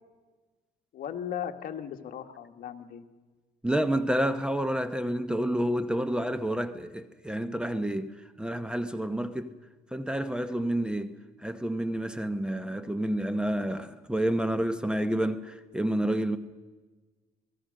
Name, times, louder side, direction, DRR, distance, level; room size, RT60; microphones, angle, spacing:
voice 1, 0.9-3.0, left 9 dB, 60° left, 1.7 m, -37 dB
voice 2, 3.6-9.5 9.9-16.4, right 1 dB, 5° right, 0.9 m, -29 dB
26.5 x 19.0 x 6.4 m
cardioid pair, 110°, 17 cm